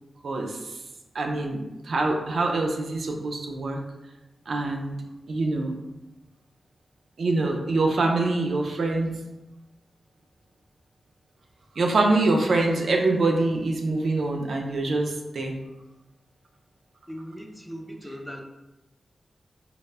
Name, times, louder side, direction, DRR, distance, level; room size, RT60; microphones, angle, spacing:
voice 1, 0.2-0.8 1.1-3.8 4.5-5.0 5.3-5.7 7.2-9.1 11.8-15.6, right 2 dB, 75° right, 2 dB, 0.3 m, -25 dB
voice 2, 12.2-12.5 17.1-18.4, equal, 10° left, 3 dB, 0.4 m, -39 dB
2.0 x 2.0 x 3.2 m, 1.0 s
cardioid pair, 40°, 0 cm